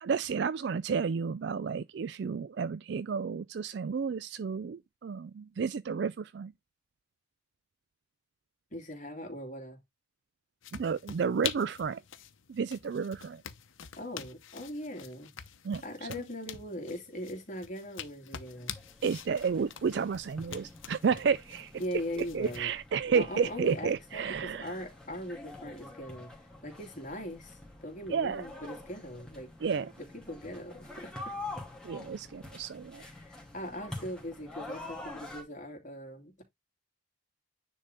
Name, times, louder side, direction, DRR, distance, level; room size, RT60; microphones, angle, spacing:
voice 1, 0.0-6.5 10.7-12.0 12.5-13.4 15.6-15.8 19.0-21.7 22.2-24.8 28.1-28.5 29.6-29.9 31.8-33.0, right 6 dB, 55° right, 0.3 m, -31 dB
voice 2, 8.7-9.8 13.9-15.3 15.8-18.7 21.8-22.7 23.1-29.5 30.1-31.3 33.0-36.4, equal, 40° left, 2.9 m, -40 dB
sound 1, 10.6-22.7, left 9 dB, 80° left, 0.9 m, -45 dB
sound 2, 18.5-35.4, left 2 dB, 5° left, 2.5 m, -46 dB
9.9 x 4.1 x 3.6 m
head